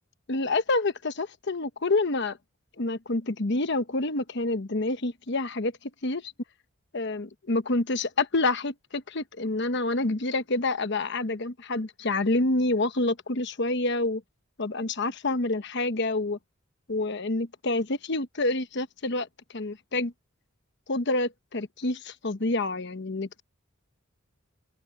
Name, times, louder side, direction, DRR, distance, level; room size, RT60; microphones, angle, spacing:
voice 1, 0.3-2.4 2.8-5.7 6.0-6.3 6.9-14.2 14.6-16.4 16.9-19.3 19.5-20.1 20.9-23.4, left 2 dB, 60° left, 1.1 m, -28 dB
open air
head